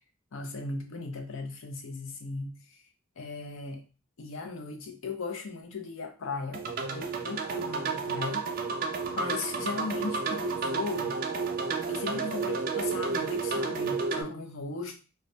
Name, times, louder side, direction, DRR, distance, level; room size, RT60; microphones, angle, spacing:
voice 1, 0.3-2.5 3.2-3.8 4.2-6.7 6.9-8.5 9.1-11.2 11.9-15.0, left 3 dB, 85° left, 0.5 m, -37 dB
sound 1, 6.5-14.2, right 4 dB, 45° right, 0.3 m, -31 dB
2.2 x 2.1 x 2.6 m
head